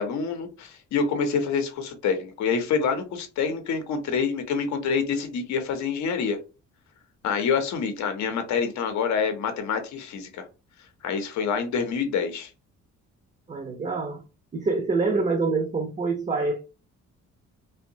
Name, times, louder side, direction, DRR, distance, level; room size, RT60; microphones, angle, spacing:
voice 1, 0.0-6.4 7.2-10.5 11.0-12.5, left 6 dB, 65° left, 0.7 m, -27 dB
voice 2, 13.5-14.2 14.5-16.7, right 3 dB, 25° right, 0.6 m, -26 dB
2.7 x 2.2 x 2.6 m
cardioid pair, 90°, 30 cm